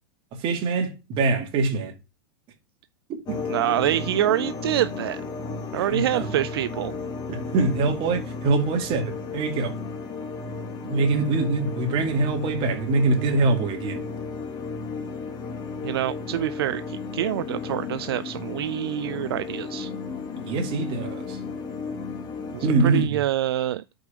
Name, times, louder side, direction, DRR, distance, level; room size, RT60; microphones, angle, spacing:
voice 1, 0.4-1.9 3.3-3.4 3.8-4.0 5.7-6.3 7.3-9.7 10.8-14.0 20.4-21.4 22.6-23.2, right 3 dB, 40° right, 2.2 m, -24 dB
sound 1, 3.3-23.0, left 4 dB, 35° left, 1.7 m, -34 dB
voice 2, 3.5-5.2 5.7-7.0 15.8-19.9 22.5-23.8, right 13 dB, 75° right, 0.4 m, -26 dB
5.2 x 4.8 x 6.1 m
hypercardioid pair, 110°, 13 cm